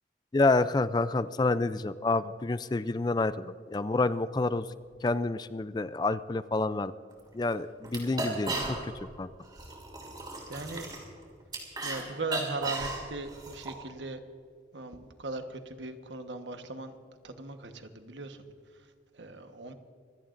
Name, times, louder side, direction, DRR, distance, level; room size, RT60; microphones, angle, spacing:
voice 1, 0.3-4.7 5.0-6.9 7.3-8.9 9.2-9.3, left 3 dB, 25° left, 14 dB, 0.4 m, -28 dB
sound 1, 7.1-7.2 7.5-7.6 7.8-9.1 9.4-12.0 12.3-13.7, right 2 dB, 25° right, 3.2 m, -35 dB
voice 2, 10.5-10.9 11.8-14.2 14.7-17.0 17.2-18.4 18.7-19.7, right 2 dB, 90° right, 7 dB, 1.2 m, -39 dB
25.5 x 16.5 x 2.6 m, 2.2 s
head